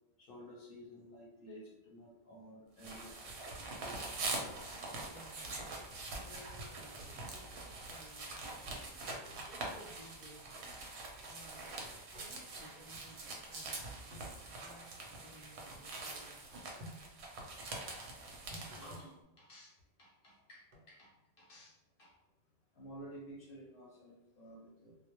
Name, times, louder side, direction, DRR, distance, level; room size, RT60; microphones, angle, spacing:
voice 1, 0.2-3.3 3.8-4.0 9.3-9.4 12.1-12.3 18.6-22.1 22.8-25.0, equal, 65° left, -4 dB, 0.7 m, -54 dB
sound 1, 2.8-19.0, right 2 dB, 85° right, 0.9 m, -44 dB
voice 2, 4.7-5.8 6.1-9.0 9.5-11.0 11.2-11.7 12.1-16.7, equal, 10° right, -8 dB, 0.8 m, -59 dB
sound 2, 12.1-12.3 12.6-12.7 14.1-14.3 16.8-17.0 18.5-19.1 20.7-20.9, equal, 55° right, 0.6 m, -50 dB
2.2 x 2.0 x 2.9 m, 0.96 s
omnidirectional pair, 1.1 m